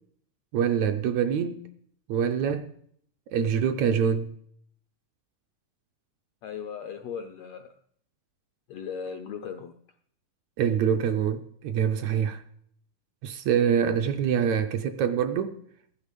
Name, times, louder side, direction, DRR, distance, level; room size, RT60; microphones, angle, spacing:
voice 1, 0.5-1.6 2.1-2.7 3.3-4.3 10.6-12.4 13.2-15.6, right 8 dB, 75° right, 1.8 m, -25 dB
voice 2, 6.4-7.7 8.7-9.7 14.3-14.5, left 6 dB, 80° left, 1.5 m, -37 dB
14.5 x 10.5 x 5.2 m
omnidirectional pair, 3.7 m